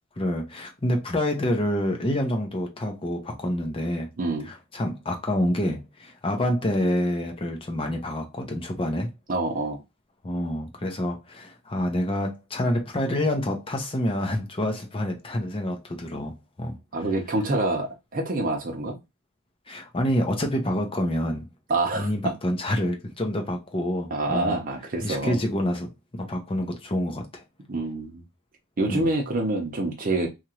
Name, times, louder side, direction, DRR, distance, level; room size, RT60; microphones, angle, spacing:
voice 1, 0.2-4.1 4.5-9.1 10.2-16.8 19.7-21.5 21.9-24.6 25.0-27.4 28.9-29.1, left 1 dB, 25° left, 0.7 m, -27 dB
voice 2, 4.2-4.5 9.3-9.8 16.9-19.0 21.7-22.4 24.1-25.4 27.7-28.2 28.8-30.3, right 2 dB, 40° right, 0.7 m, -26 dB
2.9 x 2.5 x 2.9 m
head